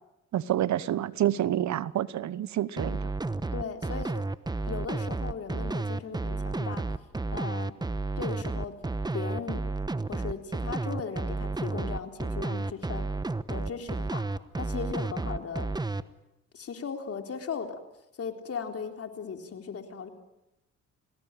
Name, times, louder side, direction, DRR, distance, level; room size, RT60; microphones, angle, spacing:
voice 1, 0.3-3.1, right 12 dB, 70° right, 17 dB, 1.1 m, -28 dB
sound 1, 2.8-16.0, right 3 dB, 15° right, 1.1 m, -31 dB
voice 2, 3.5-4.1 4.7-6.8 7.3-7.7 8.2-8.7 9.1-9.6 10.1-13.1 13.5-14.2 14.6-15.7 16.5-17.7 18.2-20.1, left 6 dB, 50° left, 5 dB, 3.9 m, -37 dB
30.0 x 19.5 x 9.2 m, 0.92 s
cardioid pair, 90°, 30 cm